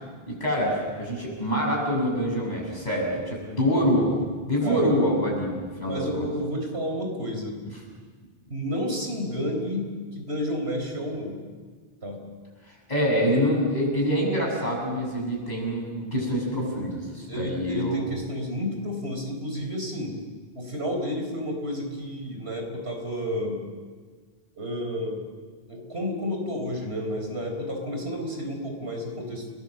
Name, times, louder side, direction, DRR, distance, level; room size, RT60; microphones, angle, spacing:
voice 1, 0.3-4.2 4.5-6.2 12.6-18.0, equal, 45° left, -2 dB, 6.9 m, -25 dB
voice 2, 4.6-4.9 5.8-7.6 8.5-11.3 12.0-12.2 17.3-20.1 20.5-23.6 24.6-25.2 25.7-29.5, equal, 80° right, 3 dB, 4.8 m, -31 dB
30.0 x 19.0 x 7.5 m, 1.5 s
omnidirectional pair, 1.1 m